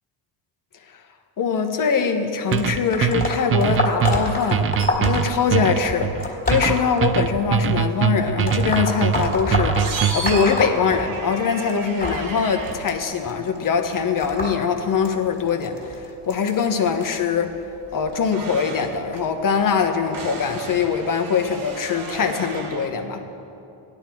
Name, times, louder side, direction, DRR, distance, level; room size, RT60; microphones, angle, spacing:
voice 1, 1.4-4.7 5.0-9.8 10.1-17.6 17.9-23.2, left 6 dB, 40° left, 6 dB, 1.3 m, -22 dB
sound 1, 2.5-7.6 8.4-11.4 11.7-17.1 17.8-18.1 19.1-19.2 20.1-20.2 20.9-21.0, left 2 dB, 20° left, 2.5 m, -28 dB
sound 2, 2.5-10.4, right 8 dB, 30° right, 0.4 m, -22 dB
sound 3, 4.8-22.9, right 4 dB, 70° right, 2.5 m, -37 dB
16.5 x 11.5 x 4.6 m, 2.8 s
cardioid pair, 110°, 50 cm